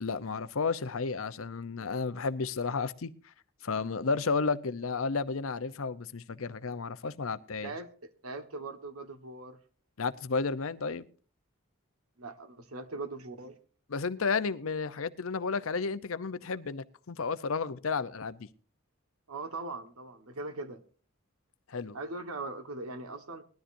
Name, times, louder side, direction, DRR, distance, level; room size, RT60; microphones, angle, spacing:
voice 1, 0.0-3.3 3.6-7.7 10.0-11.1 13.9-18.5 21.7-22.0, left 4 dB, 75° left, 0.7 m, -32 dB
voice 2, 7.6-9.6 12.2-13.6 19.3-20.8 21.9-23.4, right 3 dB, 90° right, 1.5 m, -40 dB
20.0 x 13.0 x 2.6 m
head